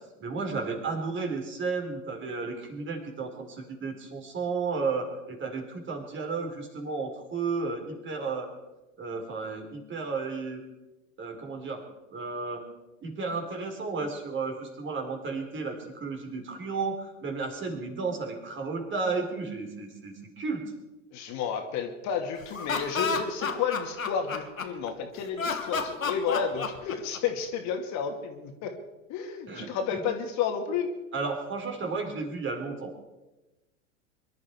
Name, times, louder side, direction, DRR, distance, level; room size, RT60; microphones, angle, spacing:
voice 1, 0.2-8.5 9.0-10.6 11.2-11.8 12.1-12.6 13.0-20.7 29.5-30.0 31.1-33.0, right 4 dB, 30° right, 2 dB, 4.1 m, -33 dB
voice 2, 21.1-28.7 29.1-30.9, left 7 dB, 45° left, 4 dB, 2.4 m, -31 dB
Laughter, 22.4-24.9 25.4-27.4, left 5 dB, 90° left, 1.7 m, -31 dB
23.5 x 12.0 x 4.7 m, 1.1 s
hypercardioid pair, 90°, 39 cm